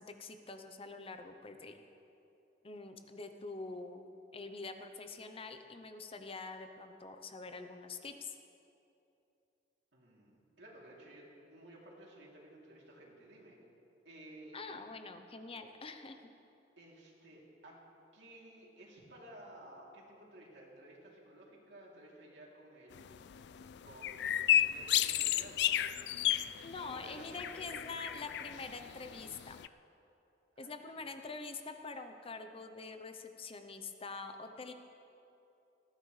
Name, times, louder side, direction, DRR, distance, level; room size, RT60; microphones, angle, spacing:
voice 1, 0.0-1.8 2.6-8.4 14.5-16.3 26.6-29.6 30.6-34.7, left 3 dB, 30° left, 7 dB, 0.7 m, -45 dB
voice 2, 9.9-13.6 14.0-14.8 16.8-17.8 18.1-23.5 23.8-25.9 26.8-28.1 30.5-31.1, right 1 dB, 70° right, -4 dB, 3.0 m, -55 dB
sound 1, 22.9-29.7, left 11 dB, 65° left, 0.3 m, -33 dB
19.5 x 14.5 x 3.2 m, 2.8 s
head